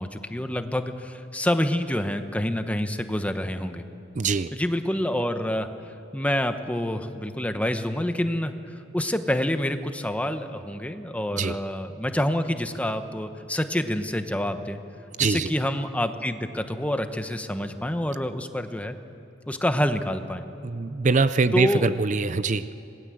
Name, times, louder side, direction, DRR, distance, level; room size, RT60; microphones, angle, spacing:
voice 1, 0.0-3.8 4.5-5.7 6.1-14.8 15.2-19.0 19.5-20.4 21.5-21.9, left 1 dB, 5° left, 8 dB, 1.1 m, -27 dB
voice 2, 4.2-4.5 11.3-11.6 15.2-15.5 20.6-22.7, right 4 dB, 40° right, 13 dB, 0.5 m, -23 dB
26.5 x 20.5 x 7.8 m, 3.0 s
head